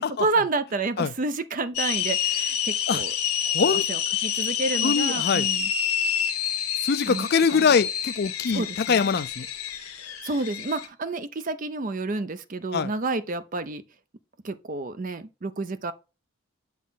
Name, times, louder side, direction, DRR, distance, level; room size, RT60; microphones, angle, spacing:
voice 1, 0.0-3.1 3.6-5.7 7.1-7.3 7.5-7.7 8.5-9.1 10.2-13.8 14.4-15.9, right 3 dB, 35° right, 0.5 m, -30 dB
sound 1, 1.7-10.9, left 9 dB, 80° left, 1.1 m, -28 dB
voice 2, 3.4-3.8 4.8-5.5 6.8-9.5 12.7-12.9, left 5 dB, 45° left, 0.4 m, -23 dB
7.3 x 4.0 x 3.9 m
head